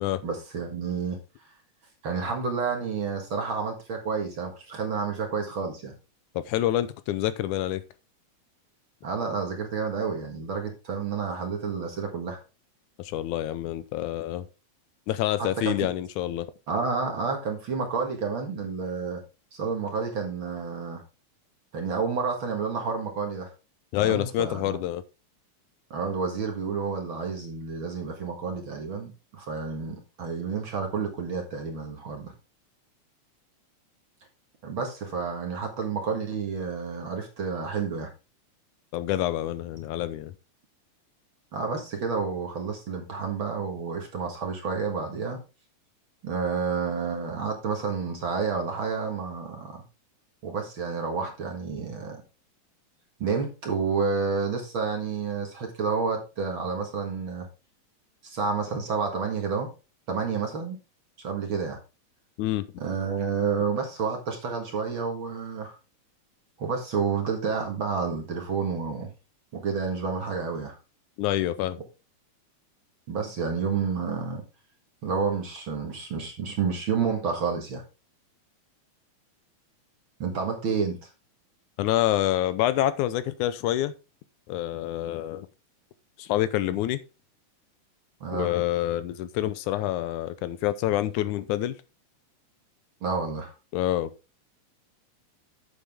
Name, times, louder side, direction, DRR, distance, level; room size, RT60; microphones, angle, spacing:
voice 1, 0.2-1.2 2.0-5.9 9.0-12.4 15.6-15.8 16.7-19.2 19.5-21.0 21.7-23.5 24.0-24.8 25.9-32.3 34.6-38.1 41.5-45.4 46.2-49.8 50.4-52.2 53.2-57.5 58.2-59.7 60.1-60.8 61.2-61.8 62.8-65.8 66.6-69.1 69.5-70.8 73.1-74.4 75.0-77.8 80.2-81.0 88.2-88.5 93.0-93.5, right 5 dB, 45° right, 2.0 m, -30 dB
voice 2, 6.4-7.8 13.0-14.5 15.1-16.5 23.9-25.0 38.9-40.3 62.4-62.6 71.2-71.8 81.8-83.9 84.5-85.5 86.2-87.0 88.3-91.8 93.7-94.1, left 13 dB, 80° left, 2.0 m, -27 dB
9.5 x 7.1 x 3.5 m
omnidirectional pair, 3.6 m